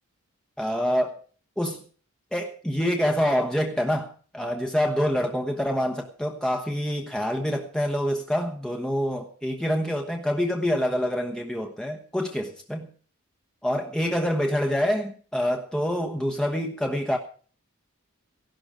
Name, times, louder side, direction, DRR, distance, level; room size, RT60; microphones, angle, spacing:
voice 1, 0.6-1.2 1.6-1.8 2.3-12.9 13.6-17.2, equal, 5° left, 1.1 m, -26 dB
16.0 x 12.0 x 4.9 m
head